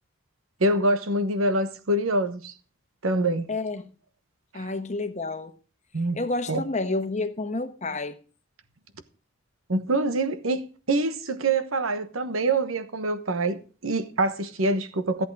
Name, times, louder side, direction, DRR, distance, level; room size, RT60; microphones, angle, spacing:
voice 1, 0.6-2.5 3.0-3.5 4.5-4.7 5.9-6.2 6.5-6.6 9.7-10.6 10.9-15.3, right 2 dB, 85° right, 1.2 m, -25 dB
voice 2, 3.5-3.9 4.5-5.5 6.1-8.2, left 2 dB, 35° left, 1.1 m, -29 dB
14.0 x 8.3 x 4.7 m
head